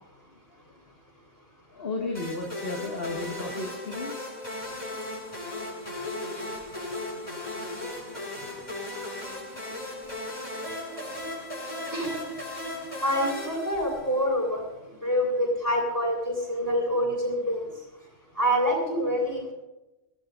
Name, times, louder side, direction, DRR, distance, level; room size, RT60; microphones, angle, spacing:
voice 1, 1.7-4.3 8.7-9.0, left 3 dB, 60° left, 0 dB, 2.3 m, -34 dB
sound 1, 2.1-14.3, left 1 dB, 45° left, 7.5 m, -36 dB
voice 2, 5.7-6.0 6.4-6.9 7.3-7.5 7.9-8.0 8.3-8.6 9.2-9.3 10.1-18.1 18.3-19.5, equal, 35° right, -6 dB, 6.8 m, -29 dB
24.0 x 18.5 x 2.6 m, 1.0 s
omnidirectional pair, 1.1 m